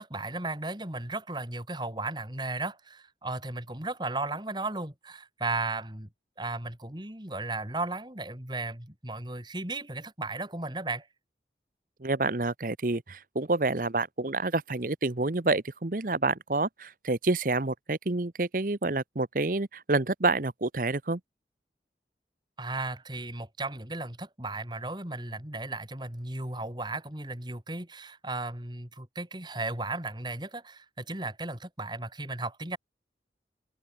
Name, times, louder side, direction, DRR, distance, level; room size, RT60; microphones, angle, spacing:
voice 1, 0.0-6.1 6.4-11.1 22.6-32.8, right 2 dB, 25° right, 2.8 m, -35 dB
voice 2, 12.0-21.2, right 3 dB, 50° right, 1.0 m, -28 dB
open air
head